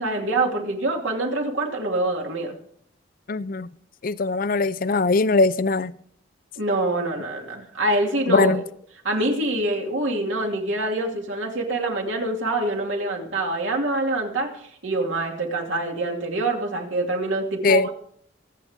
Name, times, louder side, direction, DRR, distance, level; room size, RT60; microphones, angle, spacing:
voice 1, 0.0-2.5 6.6-8.6 9.0-17.9, right 2 dB, 85° right, 2.7 m, -25 dB
voice 2, 3.3-3.7 4.0-5.9 8.3-8.6 17.6-17.9, left 3 dB, 45° left, 0.5 m, -21 dB
25.0 x 8.5 x 3.6 m
head